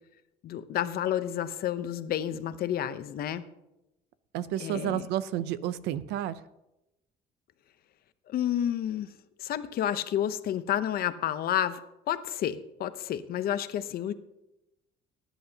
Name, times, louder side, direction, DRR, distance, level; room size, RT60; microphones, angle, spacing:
voice 1, 0.4-3.4 4.6-5.1 8.3-9.1 9.4-11.8 12.1-14.1, left 11 dB, 65° left, 12 dB, 0.8 m, -30 dB
voice 2, 4.3-6.3, right 12 dB, 85° right, 16 dB, 0.6 m, -31 dB
19.5 x 10.0 x 2.9 m, 0.92 s
cardioid pair, 110°, 17 cm